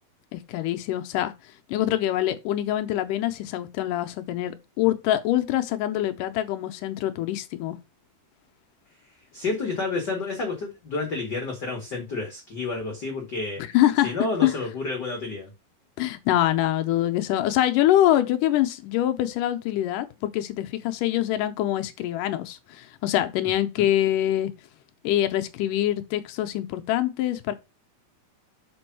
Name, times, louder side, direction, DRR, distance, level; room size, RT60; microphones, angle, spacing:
voice 1, 0.3-1.3 1.7-7.8 13.6-14.1 14.4-14.5 16.0-24.5 25.0-27.5, left 13 dB, 80° left, 2.1 m, -24 dB
voice 2, 9.3-13.6 14.0-15.5 23.8-23.9, left 3 dB, 45° left, 1.4 m, -30 dB
6.1 x 5.2 x 4.6 m
omnidirectional pair, 4.1 m